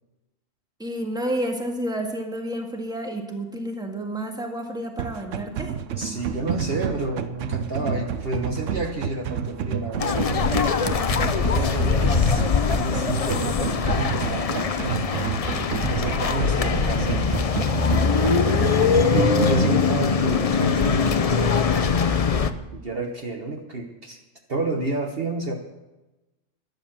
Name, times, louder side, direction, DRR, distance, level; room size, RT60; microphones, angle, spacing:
voice 1, 0.8-5.7 18.0-18.9 19.5-19.6, right 1 dB, 5° right, 2 dB, 1.8 m, -31 dB
sound 1, 5.0-19.8, right 8 dB, 70° right, 1.1 m, -30 dB
voice 2, 6.0-10.3 11.2-12.5 12.7-15.1 15.9-17.3 19.1-22.0 22.7-24.2 24.5-25.5, right 2 dB, 50° right, 3 dB, 1.3 m, -30 dB
sound 2, 10.0-22.5, left 5 dB, 40° left, 0.5 m, -22 dB
12.0 x 11.0 x 7.5 m, 1.1 s
omnidirectional pair, 1.4 m